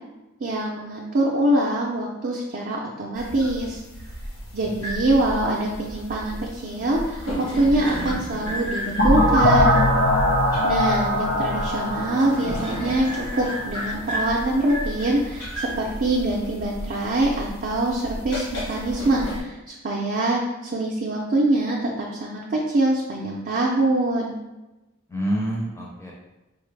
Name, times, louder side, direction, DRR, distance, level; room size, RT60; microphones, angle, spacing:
voice 1, 0.4-3.8 4.5-9.8 10.6-24.3, right 1 dB, 45° right, -3 dB, 0.4 m, -24 dB
sound 1, 3.1-19.4, equal, 80° left, 1.0 m, -33 dB
voice 2, 4.6-5.3 25.1-26.1, right 1 dB, 15° left, -2 dB, 0.5 m, -29 dB
sound 2, 9.0-13.7, left 1 dB, 55° left, 0.7 m, -21 dB
4.7 x 2.0 x 3.2 m, 1.0 s
head